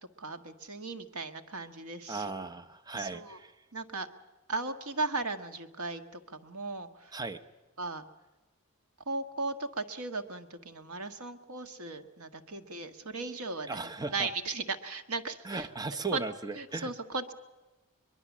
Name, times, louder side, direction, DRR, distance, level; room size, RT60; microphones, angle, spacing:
voice 1, 0.2-2.3 3.0-3.4 3.7-4.1 4.5-7.1 7.8-8.0 9.1-13.8 14.1-15.7 16.1-16.2 16.6-17.3, right 3 dB, 85° right, 7 dB, 1.6 m, -37 dB
voice 2, 2.1-3.5 7.1-7.4 13.7-14.3 15.4-16.9, right 3 dB, 20° right, 8 dB, 0.9 m, -37 dB
23.5 x 22.0 x 7.3 m, 1.1 s
head